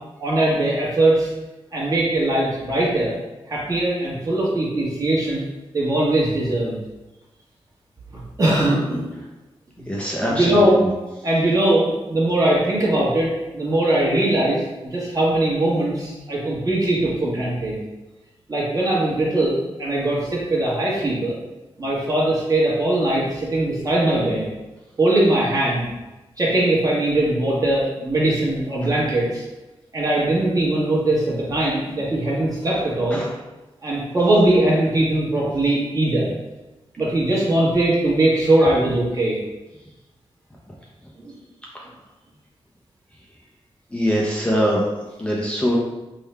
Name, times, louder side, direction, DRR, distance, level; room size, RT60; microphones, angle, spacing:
voice 1, 0.2-1.3 1.7-3.1 3.5-5.4 5.7-6.8 8.1-9.1 10.3-10.8 11.2-17.8 18.5-21.3 21.8-24.5 25.0-25.9 26.4-29.4 29.9-33.2 33.8-36.3 37.0-39.4 41.2-41.3, right 1 dB, 35° right, -6 dB, 1.3 m, -20 dB
voice 2, 9.9-10.6 33.1-33.3 43.9-44.9 45.2-45.8, equal, 10° left, -4 dB, 0.5 m, -22 dB
3.6 x 2.3 x 4.3 m, 1.1 s
wide cardioid pair, 140°, 10 cm